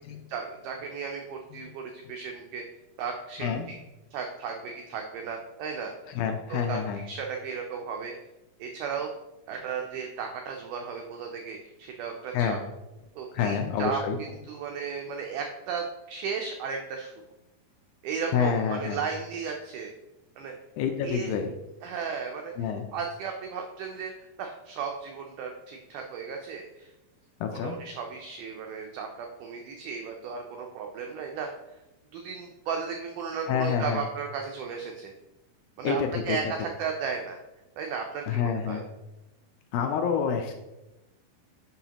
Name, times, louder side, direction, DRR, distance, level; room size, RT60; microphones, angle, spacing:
voice 1, 0.3-2.6 3.0-3.8 4.1-6.2 6.5-8.1 8.6-9.1 9.5-12.6 13.2-14.0 14.5-17.1 18.0-19.9 20.4-20.6 21.0-21.4 21.8-22.5 22.9-26.9 27.6-31.8 32.1-35.1 35.8-37.4 37.8-38.8, right 6 dB, 90° right, 2 dB, 1.8 m, -35 dB
voice 2, 6.1-7.0 12.3-12.6 13.3-14.2 18.3-19.0 20.8-21.5 22.6-22.9 27.4-27.8 33.5-34.0 35.8-36.4 38.3-38.8 39.7-40.6, left 7 dB, 80° left, 5 dB, 2.2 m, -28 dB
7.1 x 5.6 x 2.9 m, 0.99 s
omnidirectional pair, 4.4 m